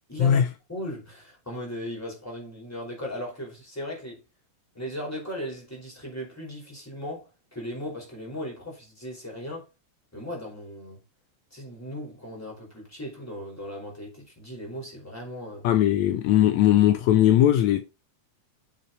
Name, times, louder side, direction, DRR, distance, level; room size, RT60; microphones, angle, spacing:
voice 1, 0.1-0.4 0.7-4.2 4.7-9.7 10.1-11.0 11.5-15.7, equal, 5° left, 4.4 m, -37 dB
voice 2, 15.6-17.8, left 11 dB, 80° left, 2.0 m, -19 dB
7.4 x 6.7 x 4.2 m
omnidirectional pair, 3.3 m